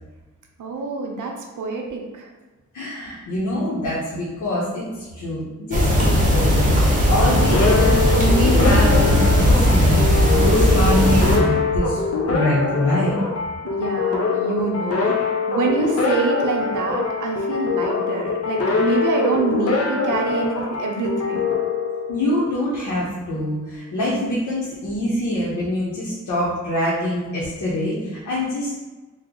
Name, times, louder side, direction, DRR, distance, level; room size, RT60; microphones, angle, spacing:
voice 1, 0.6-2.3 13.7-21.5, right 4 dB, 85° right, 1 dB, 0.6 m, -26 dB
voice 2, 2.7-6.7 7.0-12.0 12.3-13.1 22.1-28.8, left 1 dB, 80° left, -6 dB, 0.8 m, -24 dB
sound 1, 5.7-11.4, equal, 25° right, 0.7 m, -17 dB
sound 2, 7.2-22.6, left 4 dB, 55° left, 0.5 m, -24 dB
3.1 x 2.0 x 3.6 m, 1.2 s
wide cardioid pair, 130°, 30 cm